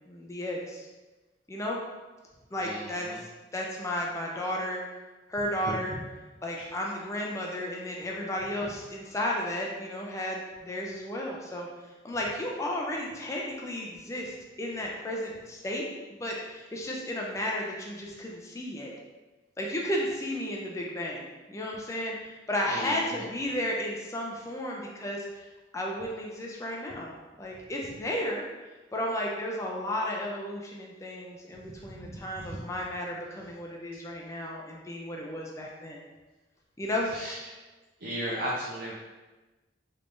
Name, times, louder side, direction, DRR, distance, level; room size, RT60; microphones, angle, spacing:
voice 1, 0.1-0.9 1.5-1.8 2.5-3.1 3.5-4.8 5.3-6.0 6.4-11.7 12.0-15.8 16.1-18.9 19.6-25.5 25.7-28.4 28.9-36.0 36.8-37.2, left 1 dB, 15° left, -2 dB, 0.4 m, -33 dB
voice 2, 2.6-3.2 5.6-5.7 6.6-6.7 22.7-23.2 31.6-32.6 37.1-37.5 38.0-38.9, equal, 60° right, -6 dB, 0.6 m, -36 dB
3.5 x 3.2 x 2.5 m, 1.2 s
head